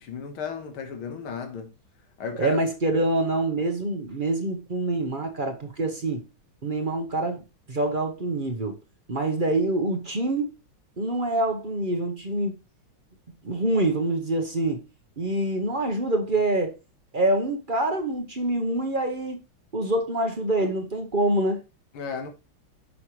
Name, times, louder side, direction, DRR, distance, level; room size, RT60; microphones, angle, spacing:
voice 1, 0.0-1.7 2.2-2.6 2.9-3.0 21.9-22.3, left 4 dB, 85° left, 2.2 m, -33 dB
voice 2, 2.4-6.2 6.6-7.4 7.7-8.8 9.1-10.5 11.0-12.6 13.4-14.8 15.2-16.8 17.1-19.4 19.7-21.6, right 2 dB, 35° right, 0.8 m, -25 dB
9.3 x 5.4 x 3.1 m
omnidirectional pair, 2.2 m